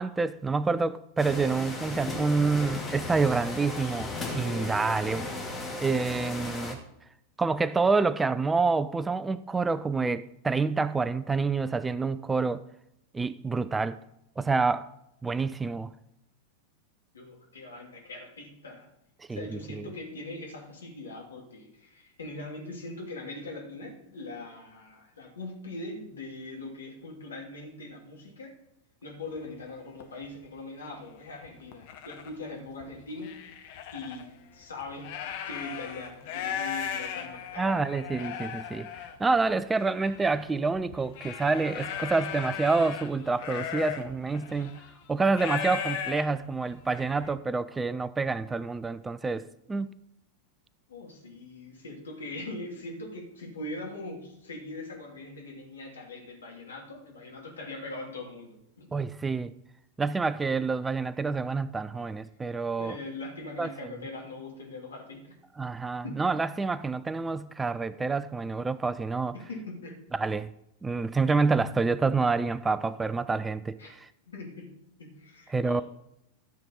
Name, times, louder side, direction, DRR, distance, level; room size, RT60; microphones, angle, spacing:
voice 1, 0.0-5.4 5.8-6.8 7.4-12.6 13.1-14.0 14.4-14.9 15.2-15.9 19.3-19.6 37.6-38.9 39.2-44.7 45.1-49.9 58.9-59.5 60.0-63.0 63.6-63.7 65.6-69.3 70.1-70.5 70.8-73.8 75.5-75.8, right 4 dB, 10° right, 0.4 m, -27 dB
sound 1, 1.2-6.7, left 2 dB, 15° left, 2.1 m, -36 dB
voice 2, 17.1-18.9 19.3-28.6 29.0-33.5 33.9-35.1 35.5-37.8 50.9-58.9 62.8-65.3 66.0-66.2 69.3-70.0 73.8-73.9 74.3-74.7 75.0-75.8, left 2 dB, 70° left, 2.6 m, -41 dB
sound 2, 29.4-29.5 30.0-30.2 30.9-31.0 31.4-32.3 32.8-34.2 34.8-47.3, left 8 dB, 50° left, 1.2 m, -37 dB
13.0 x 7.3 x 4.1 m
figure-of-eight pair, 90°, 0 cm